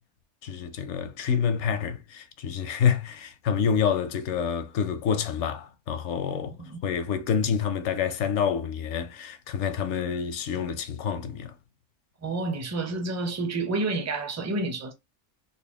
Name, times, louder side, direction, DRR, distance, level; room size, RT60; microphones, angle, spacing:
voice 1, 0.4-6.6 6.8-11.5, left 7 dB, 80° left, 0.9 m, -27 dB
voice 2, 6.3-6.8 12.2-14.9, right 2 dB, 20° right, 0.4 m, -30 dB
4.0 x 2.1 x 3.4 m
omnidirectional pair, 1.2 m